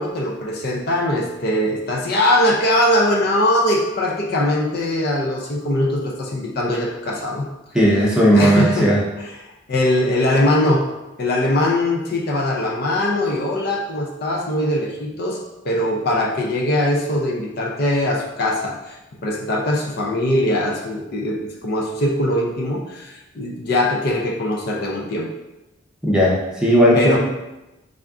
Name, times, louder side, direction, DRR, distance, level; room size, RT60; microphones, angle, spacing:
voice 1, 0.0-7.5 8.3-8.9 9.2-10.8 11.2-15.4 15.6-19.0 19.2-25.3 26.9-27.2, left 1 dB, 55° left, -1 dB, 0.5 m, -21 dB
voice 2, 7.7-9.0 26.0-27.2, equal, 5° right, -5 dB, 0.7 m, -15 dB
3.4 x 2.5 x 3.5 m, 0.97 s
head